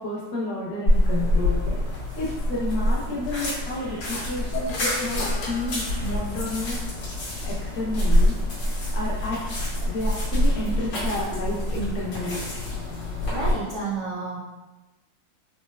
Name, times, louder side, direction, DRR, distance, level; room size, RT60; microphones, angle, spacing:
voice 1, 0.0-1.6 2.2-6.8 7.4-8.3 8.9-9.4 9.8-12.4 12.7-13.2, left 2 dB, 70° left, -4 dB, 0.8 m, -31 dB
sound 1, 0.9-13.5, left 1 dB, 55° left, 1.3 m, -26 dB
sound 2, 4.1-6.8, left 2 dB, 90° left, 1.6 m, -35 dB
voice 2, 13.3-14.4, right 3 dB, 90° right, -8 dB, 0.8 m, -31 dB
4.1 x 2.1 x 2.2 m, 1.1 s
omnidirectional pair, 2.4 m